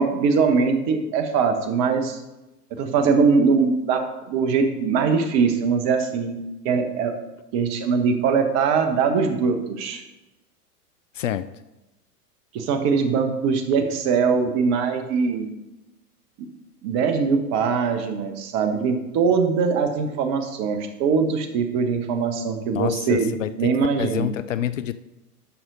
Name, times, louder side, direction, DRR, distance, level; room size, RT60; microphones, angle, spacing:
voice 1, 0.0-2.2 2.7-4.0 4.3-6.3 6.6-7.1 7.5-10.0 12.5-15.5 16.4-16.5 16.8-24.3, right 5 dB, 35° right, 6 dB, 1.2 m, -22 dB
voice 2, 11.1-11.5 22.7-24.9, left 11 dB, 55° left, 14 dB, 0.5 m, -27 dB
11.5 x 6.1 x 4.0 m, 1.0 s
figure-of-eight pair, 100°, 47 cm